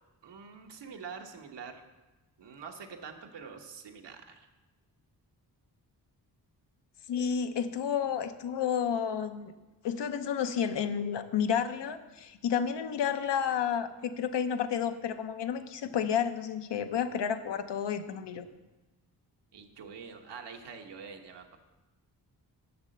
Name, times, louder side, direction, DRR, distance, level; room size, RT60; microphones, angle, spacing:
voice 1, 0.2-1.8 2.4-4.5 19.5-21.6, right 6 dB, 80° right, 5 dB, 1.2 m, -45 dB
voice 2, 7.1-9.5 9.8-18.5, left 8 dB, 80° left, 9 dB, 0.8 m, -31 dB
7.2 x 6.4 x 7.7 m, 1.1 s
cardioid pair, 65°, 41 cm